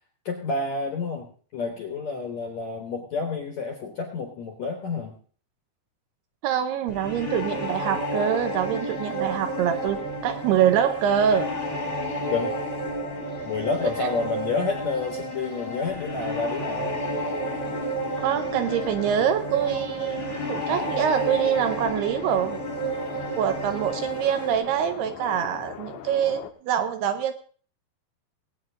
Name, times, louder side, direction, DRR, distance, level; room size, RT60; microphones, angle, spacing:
voice 1, 0.3-5.1 12.3-12.5 13.4-16.9, left 4 dB, 65° left, 3 dB, 1.8 m, -29 dB
voice 2, 6.4-11.5 14.0-14.1 18.2-22.6 23.4-27.3, right 9 dB, 80° right, 8 dB, 2.5 m, -25 dB
sound 1, 6.9-24.5, right 1 dB, 20° left, 1.2 m, -31 dB
sound 2, 11.3-26.5, left 10 dB, 80° left, 3.1 m, -42 dB
19.5 x 9.1 x 3.7 m, 0.43 s
omnidirectional pair, 5.2 m